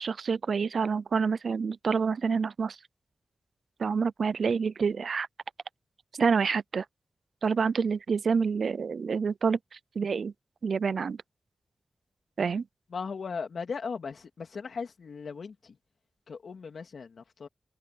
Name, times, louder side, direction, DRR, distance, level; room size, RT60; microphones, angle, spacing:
voice 1, 0.0-2.8 3.8-5.3 6.2-6.8 7.4-9.6 10.0-10.3 10.6-11.2 12.4-12.6, right 5 dB, 70° right, 0.4 m, -27 dB
voice 2, 12.9-15.8 16.3-17.5, left 5 dB, 75° left, 2.9 m, -38 dB
wide cardioid pair, 135°, 0 cm